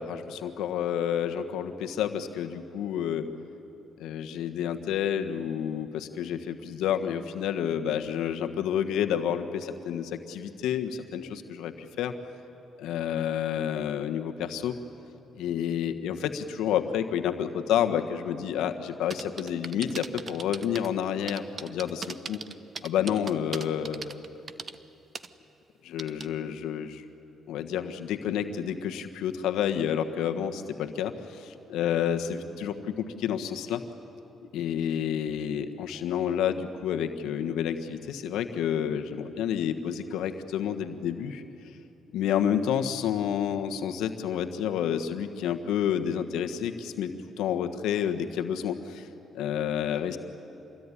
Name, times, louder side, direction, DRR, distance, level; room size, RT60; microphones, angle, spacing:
voice 1, 0.0-3.3 4.0-12.1 12.8-14.7 15.3-22.4 22.8-24.3 25.8-27.0 27.5-31.4 31.7-33.8 34.4-41.4 42.1-49.1 49.3-50.2, left 9 dB, 90° left, 6 dB, 1.4 m, -29 dB
sound 1, 19.1-20.9 21.3-24.8 25.1-25.3 26.0-26.3, right 5 dB, 45° right, 1.0 m, -38 dB
26.5 x 21.0 x 9.9 m, 3.0 s
cardioid pair, 90°, 0 cm